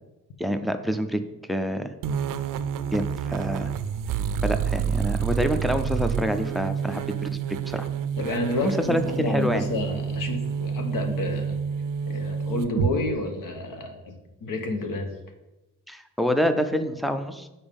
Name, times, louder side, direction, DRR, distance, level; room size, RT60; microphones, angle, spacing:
voice 1, 0.4-1.2 1.5-1.9 2.9-3.7 4.4-7.9 8.6-9.6 15.9-17.5, equal, ahead, 8 dB, 0.4 m, -27 dB
sound 1, 2.0-12.9, right 7 dB, 70° right, 0.5 m, -28 dB
voice 2, 8.2-11.6 12.1-15.1, left 2 dB, 70° left, 5 dB, 1.2 m, -30 dB
7.1 x 4.4 x 5.3 m, 1.0 s
wide cardioid pair, 150°, 34 cm